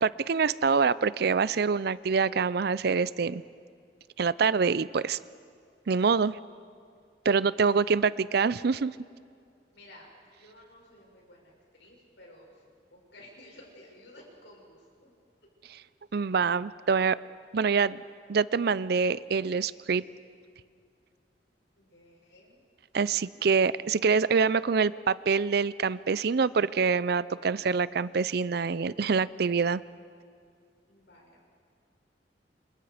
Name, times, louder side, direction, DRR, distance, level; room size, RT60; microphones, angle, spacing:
voice 1, 0.0-3.4 4.2-5.2 5.9-6.3 7.2-8.9 16.1-17.2 17.5-18.0 18.3-20.0 22.9-29.8, right 5 dB, 60° right, 18 dB, 0.5 m, -25 dB
voice 2, 9.7-10.1 10.4-11.5 11.8-15.1 21.8-22.6 30.9-31.5, left 1 dB, 80° left, -2 dB, 7.2 m, -54 dB
28.5 x 26.5 x 5.0 m, 2.2 s
head